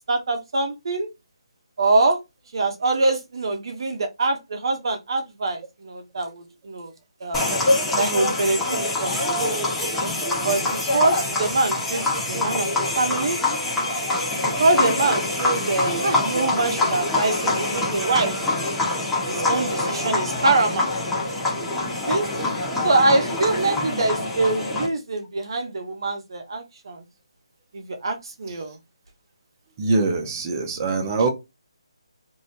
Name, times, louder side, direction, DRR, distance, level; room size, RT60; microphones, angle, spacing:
voice 1, 0.1-1.1 1.8-2.2 2.5-6.9 7.2-7.5 8.0-9.1 10.4-13.4 14.4-18.4 19.3-20.9 21.8-22.3 22.8-27.0 27.7-28.8, right 2 dB, 55° right, 0.8 m, -24 dB
sound 1, 7.3-24.9, left 2 dB, 5° left, 1.3 m, -25 dB
voice 2, 29.8-31.3, right 3 dB, 25° right, 0.8 m, -23 dB
3.1 x 2.7 x 2.8 m
figure-of-eight pair, 160°, 3 cm